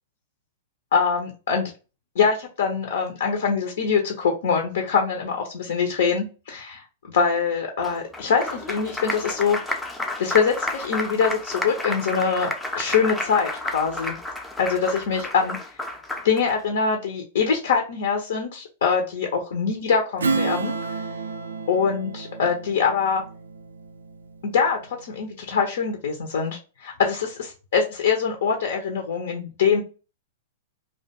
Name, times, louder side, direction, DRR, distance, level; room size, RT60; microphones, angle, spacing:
voice 1, 0.9-1.7 2.2-9.6 10.2-14.1 14.6-15.6 16.2-20.7 21.7-23.2 24.4-27.3 27.7-29.8, left 6 dB, 65° left, 3 dB, 0.5 m, -23 dB
Applause, 7.8-16.6, left 2 dB, 5° left, 0.4 m, -31 dB
Strum, 20.2-25.1, right 4 dB, 80° right, 0.3 m, -31 dB
2.3 x 2.2 x 2.7 m, 0.33 s
hypercardioid pair, 110°, 0 cm